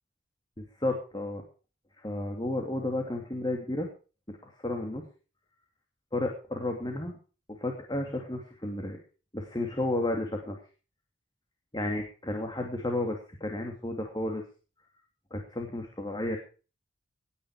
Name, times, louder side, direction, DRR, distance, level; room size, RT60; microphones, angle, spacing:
voice 1, 0.6-1.4 2.0-3.9 4.4-5.0 6.1-7.2 7.5-9.0 9.3-10.6 11.7-14.4 15.3-16.4, left 1 dB, 20° left, 2 dB, 2.7 m, -32 dB
19.0 x 9.7 x 5.0 m, 0.36 s
head